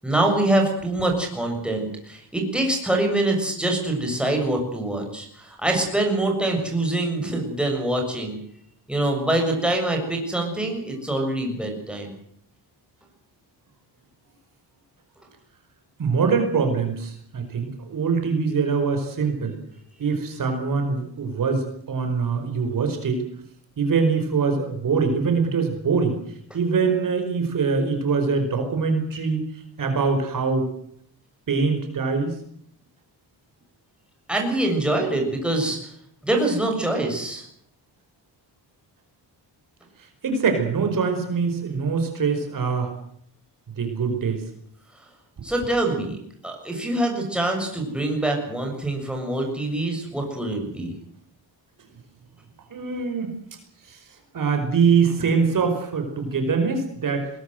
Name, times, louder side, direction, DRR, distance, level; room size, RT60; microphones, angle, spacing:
voice 1, 0.0-8.4 8.9-12.1 34.3-35.9 36.2-37.4 45.4-46.2 46.4-50.9, right 1 dB, ahead, 1 dB, 7.1 m, -24 dB
voice 2, 16.0-19.5 20.0-23.2 23.8-26.2 26.5-29.4 29.8-30.7 31.5-32.3 40.2-42.9 43.8-44.4 52.7-53.3 53.9-54.0 54.3-57.3, right 5 dB, 50° right, 5 dB, 5.1 m, -23 dB
22.0 x 20.0 x 7.9 m, 0.67 s
wide cardioid pair, 140°, 41 cm